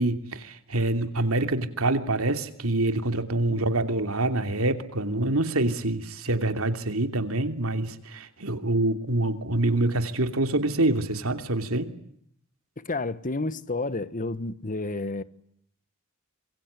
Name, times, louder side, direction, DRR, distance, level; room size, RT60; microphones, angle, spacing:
voice 1, 0.0-11.9, right 2 dB, 70° right, 2.9 m, -26 dB
voice 2, 12.8-15.2, left 2 dB, 40° left, 1.4 m, -30 dB
26.5 x 23.0 x 8.3 m
head